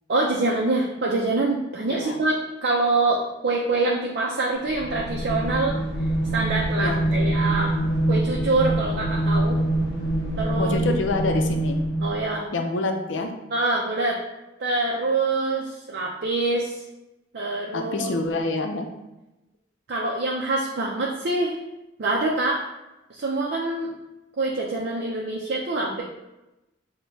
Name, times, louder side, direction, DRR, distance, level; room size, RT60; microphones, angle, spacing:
voice 1, 0.1-5.8 6.3-7.7 8.1-9.6 10.4-10.8 12.0-12.5 13.5-14.2 14.6-16.8 17.3-18.1 19.9-21.6 22.0-22.6 23.1-23.9 24.4-26.0, right 2 dB, 55° right, -2 dB, 0.5 m, -25 dB
sound 1, 4.7-12.4, right 1 dB, 55° left, 1.0 m, -25 dB
voice 2, 6.8-7.3 10.6-11.8 12.5-13.3 17.7-18.9, left 3 dB, 75° left, 4 dB, 0.5 m, -27 dB
6.1 x 2.2 x 2.7 m, 0.99 s
head